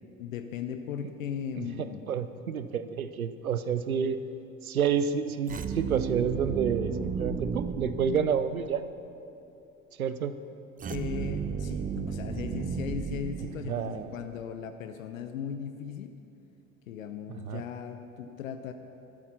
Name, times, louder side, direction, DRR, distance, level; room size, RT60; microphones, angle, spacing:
voice 1, 0.2-2.0 10.9-16.1 16.9-18.7, left 8 dB, 70° left, 8 dB, 0.7 m, -37 dB
voice 2, 1.6-4.2 4.6-8.8 10.0-10.3 13.7-14.2 17.3-17.6, right 7 dB, 85° right, 12 dB, 0.6 m, -29 dB
sound 1, 5.5-8.8 10.8-14.1, right 6 dB, 20° right, 0.6 m, -34 dB
12.5 x 11.0 x 5.7 m, 2.7 s
figure-of-eight pair, 60°, 41 cm